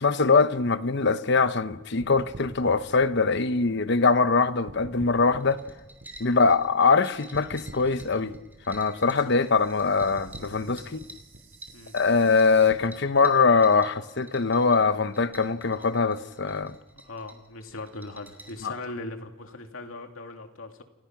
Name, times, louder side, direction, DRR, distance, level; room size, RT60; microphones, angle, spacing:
voice 1, 0.0-5.6 6.2-8.3 8.7-11.0 11.9-16.7 18.6-18.7, left 4 dB, 60° left, 0.9 m, -22 dB
sound 1, 2.0-4.4 4.7-7.0 7.3-12.7, right 1 dB, 70° right, 7.7 m, -46 dB
sound 2, 5.4-18.7, right 1 dB, 10° right, 3.1 m, -50 dB
voice 2, 11.7-12.1 16.9-20.8, left 2 dB, 85° left, 2.5 m, -40 dB
29.5 x 28.5 x 6.1 m
head